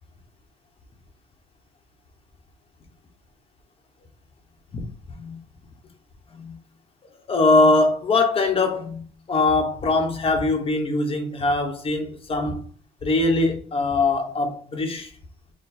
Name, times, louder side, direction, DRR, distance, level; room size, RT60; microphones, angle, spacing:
voice 1, 4.7-5.4 6.3-6.6 7.3-12.6 13.0-15.1, left 2 dB, 35° left, 1.0 m, -22 dB
4.5 x 2.2 x 4.2 m
cardioid pair, 110°, 17 cm